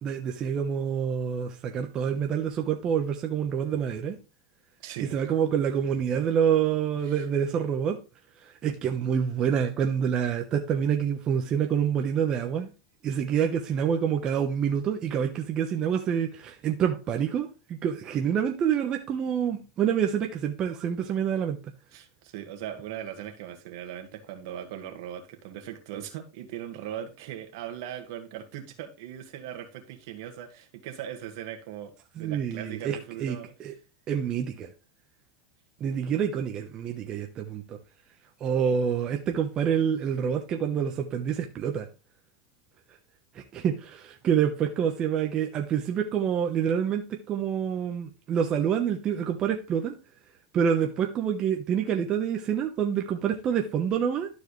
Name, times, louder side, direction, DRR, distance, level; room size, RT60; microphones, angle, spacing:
voice 1, 0.0-4.2 5.0-8.0 8.4-12.7 13.0-21.6 32.2-33.7 34.1-34.7 35.8-37.8 38.4-41.9 43.3-49.9 50.5-54.3, right 8 dB, 35° right, 1.0 m, -27 dB
voice 2, 4.8-5.3 7.1-7.2 21.9-33.5, right 10 dB, 65° right, 1.8 m, -39 dB
12.0 x 4.8 x 3.2 m
supercardioid pair, 125°, 2 cm